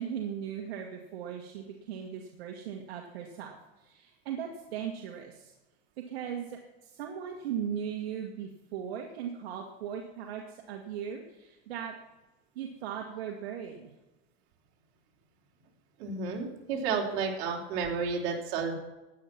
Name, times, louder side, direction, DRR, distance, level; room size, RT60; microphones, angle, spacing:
voice 1, 0.0-5.5 6.1-12.0 12.6-13.9, right 8 dB, 70° right, 1 dB, 1.9 m, -38 dB
voice 2, 16.0-18.7, right 5 dB, 55° right, -1 dB, 3.6 m, -31 dB
14.5 x 9.3 x 6.0 m, 1.1 s
supercardioid pair, 135°, 31 cm